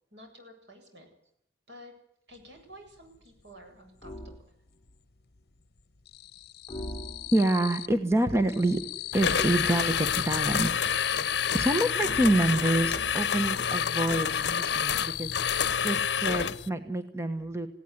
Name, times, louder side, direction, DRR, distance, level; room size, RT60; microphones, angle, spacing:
voice 1, 0.1-1.1 1.7-1.9 2.3-4.4, equal, 80° right, 4 dB, 7.7 m, -50 dB
sound 1, 2.5-2.6 2.9-4.1 4.4-5.1 5.4-8.0 8.3-12.4 12.9-15.7, left 15 dB, 60° left, 1.0 m, -39 dB
sound 2, 4.0-4.5 6.7-7.6 9.3-10.5 12.0-13.4, equal, 20° left, 1.7 m, -42 dB
voice 2, 7.3-10.8 11.5-15.3 15.8-17.7, right 1 dB, 15° right, 8 dB, 1.3 m, -27 dB
sound 3, 9.1-16.7, left 7 dB, 75° left, 0.7 m, -28 dB
18.5 x 17.5 x 9.9 m, 0.76 s
head